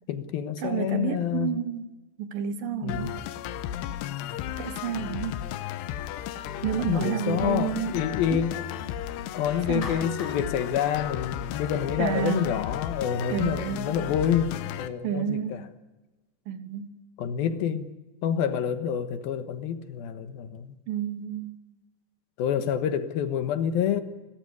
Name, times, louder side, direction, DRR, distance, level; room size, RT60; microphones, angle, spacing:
voice 1, 0.1-1.6 2.8-3.1 6.9-8.7 9.3-15.6 17.2-17.9 18.2-20.8 22.4-24.0, left 8 dB, 70° left, 3.0 m, -28 dB
voice 2, 0.6-1.9 2.2-3.2 4.6-5.5 6.6-8.4 9.7-10.0 12.0-12.5 13.3-13.9 15.0-15.7 16.5-16.9 20.9-21.6, right 8 dB, 70° right, 2.5 m, -30 dB
sound 1, 2.9-14.9, left 11 dB, 85° left, 3.0 m, -34 dB
Clapping, 9.8-12.1, left 5 dB, 55° left, 5.7 m, -42 dB
29.5 x 13.5 x 9.5 m
omnidirectional pair, 4.7 m